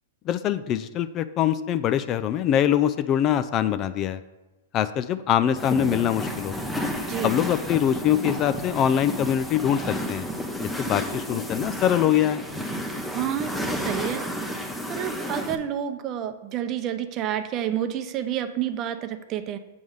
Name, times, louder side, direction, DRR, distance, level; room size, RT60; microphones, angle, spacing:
voice 1, 0.3-4.2 4.7-6.5 7.2-10.2 10.6-12.4, left 10 dB, 35° left, 12 dB, 0.4 m, -23 dB
sound 1, 5.6-15.6, equal, 5° left, 0.8 m, -31 dB
voice 2, 7.1-7.4 13.1-14.2 14.9-19.6, right 10 dB, 35° right, 9 dB, 0.7 m, -29 dB
7.8 x 3.6 x 6.4 m, 1.2 s
hypercardioid pair, 120°, 0 cm